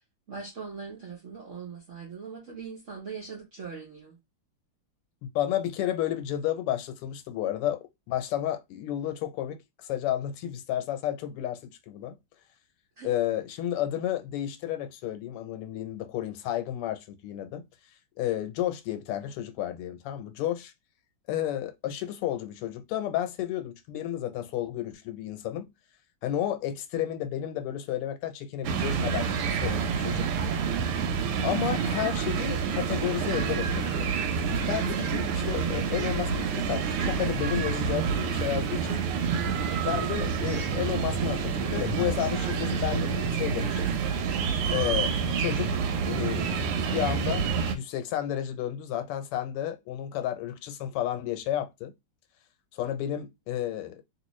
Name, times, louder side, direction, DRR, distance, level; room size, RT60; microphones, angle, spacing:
voice 1, 0.3-4.2 13.0-13.1, right 5 dB, 60° right, 0.7 m, -41 dB
voice 2, 5.2-12.2 13.0-17.6 18.2-20.7 21.3-25.7 26.2-29.3 29.6-30.3 31.4-34.1 34.7-39.0 39.8-44.0 44.7-51.9 52.7-54.0, left 12 dB, 90° left, 1.6 m, -32 dB
sound 1, 28.6-47.7, right 6 dB, 85° right, 1.5 m, -28 dB
3.0 x 3.0 x 3.0 m
omnidirectional pair, 2.4 m